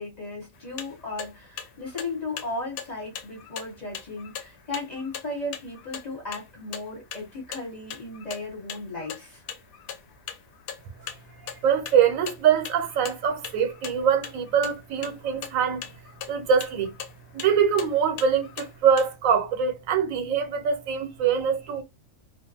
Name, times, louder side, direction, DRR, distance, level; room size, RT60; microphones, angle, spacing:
voice 1, 0.0-9.4, left 2 dB, 35° left, 1.0 m, -35 dB
sound 1, 0.5-19.1, left 8 dB, 85° left, 1.0 m, -41 dB
voice 2, 11.6-15.8 16.3-16.9 17.3-21.8, right 7 dB, 80° right, 1.0 m, -23 dB
2.5 x 2.4 x 2.7 m
omnidirectional pair, 1.4 m